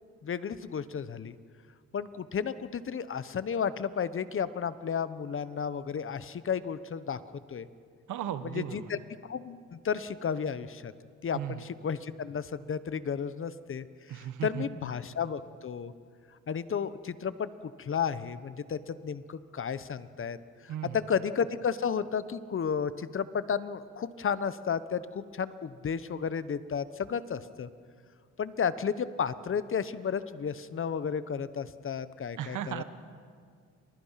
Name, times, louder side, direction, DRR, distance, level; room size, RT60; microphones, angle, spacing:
voice 1, 0.2-1.3 1.9-7.2 7.5-7.7 8.4-10.9 11.2-15.9 16.5-20.4 20.6-27.7 28.4-32.8, left 7 dB, 45° left, 14 dB, 1.1 m, -33 dB
voice 2, 8.1-8.9 11.3-11.7 14.1-14.6 20.7-21.0 32.4-32.8, right 10 dB, 80° right, 11 dB, 1.6 m, -36 dB
30.0 x 27.0 x 5.9 m, 2.1 s
cardioid pair, 90°, 30 cm